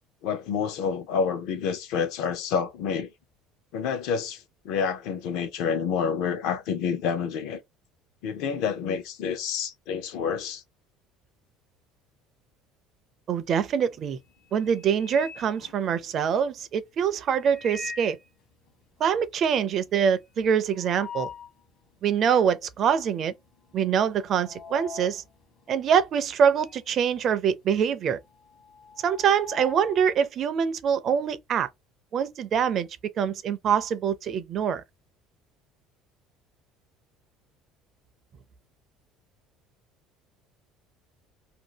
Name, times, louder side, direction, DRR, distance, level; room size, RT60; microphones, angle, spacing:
voice 1, 0.2-3.1 3.7-7.6 8.2-10.6, left 6 dB, 65° left, 0.7 m, -28 dB
voice 2, 13.3-14.2 14.5-18.2 19.0-21.3 22.0-23.3 23.7-25.2 25.7-28.2 29.0-31.7 32.1-32.9 33.2-34.8, right 7 dB, 35° right, 0.4 m, -24 dB
sound 1, 13.5-13.9 14.3-16.4 17.3-18.3 18.7-18.8 19.0-19.1 19.5-21.6 22.1-22.2 23.0-23.3 23.6-26.9 27.2-30.1, left 5 dB, 45° left, 1.1 m, -43 dB
2.6 x 2.5 x 2.9 m
cardioid pair, 170°, 0 cm